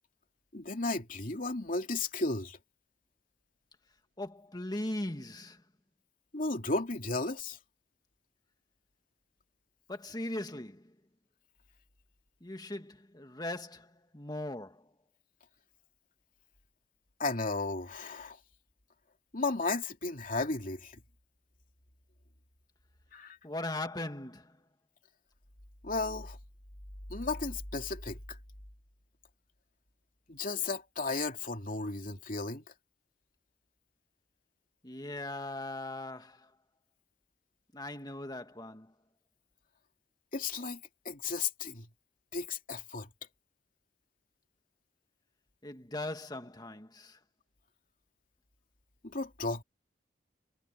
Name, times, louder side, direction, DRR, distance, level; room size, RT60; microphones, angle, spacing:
voice 1, 0.5-2.6 6.3-7.6 17.2-18.4 19.3-21.0 23.1-23.4 25.8-26.4 27.1-28.4 30.3-32.6 40.3-41.9 42.3-43.1 49.0-49.6, left 3 dB, 50° left, 2.9 m, -34 dB
voice 2, 4.2-5.6 9.9-11.0 12.4-14.9 23.4-24.6 34.8-36.5 37.7-38.9 45.6-47.2, left 1 dB, 20° left, 2.0 m, -39 dB
head